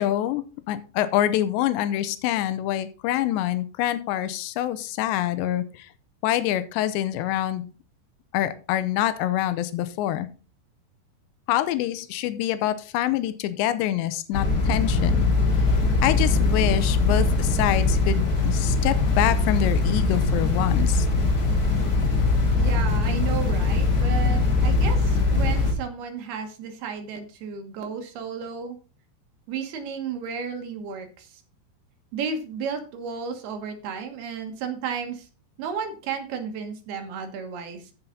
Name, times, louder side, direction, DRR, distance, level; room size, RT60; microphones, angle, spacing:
voice 1, 0.0-5.9 6.2-7.7 8.3-10.3 11.5-15.3 16.0-21.1, left 13 dB, 90° left, 13 dB, 2.9 m, -26 dB
sound 1, 14.3-25.7, left 3 dB, 35° left, 1.5 m, -21 dB
voice 2, 22.6-28.8 29.5-31.3 32.1-35.3 35.6-37.9, right 6 dB, 70° right, 5 dB, 3.2 m, -33 dB
14.5 x 5.6 x 3.9 m, 0.34 s
omnidirectional pair, 5.0 m